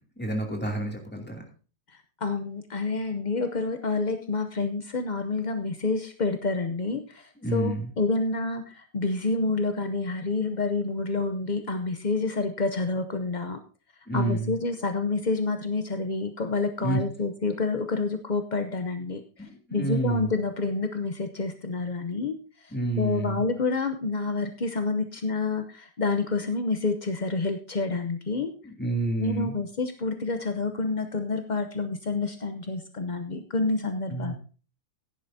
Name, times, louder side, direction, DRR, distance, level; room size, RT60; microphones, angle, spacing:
voice 1, 0.2-1.4 7.4-7.8 14.1-14.5 16.8-17.0 19.7-20.3 22.7-23.4 28.8-29.5 34.1-34.3, right 2 dB, 5° left, 0 dB, 2.6 m, -28 dB
voice 2, 1.9-13.6 14.1-28.5 29.2-34.3, left 3 dB, 50° left, 7 dB, 0.5 m, -28 dB
15.0 x 10.5 x 2.8 m, 0.37 s
omnidirectional pair, 1.9 m